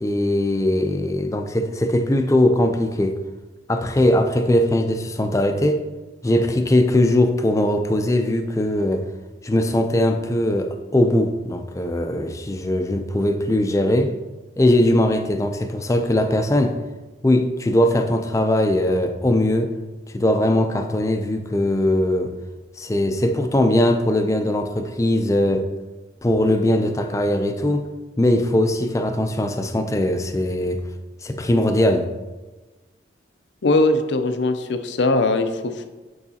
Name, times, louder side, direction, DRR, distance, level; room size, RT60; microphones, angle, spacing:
voice 1, 0.0-3.2 3.7-5.8 6.2-9.0 9.4-14.1 14.6-16.8 17.2-19.7 20.1-22.3 22.8-25.7 26.2-27.9 28.2-30.8 31.2-32.0, left 1 dB, 15° left, 6 dB, 0.4 m, -20 dB
voice 2, 33.6-35.8, left 2 dB, 70° left, 8 dB, 0.5 m, -20 dB
9.3 x 4.8 x 2.8 m, 1.2 s
head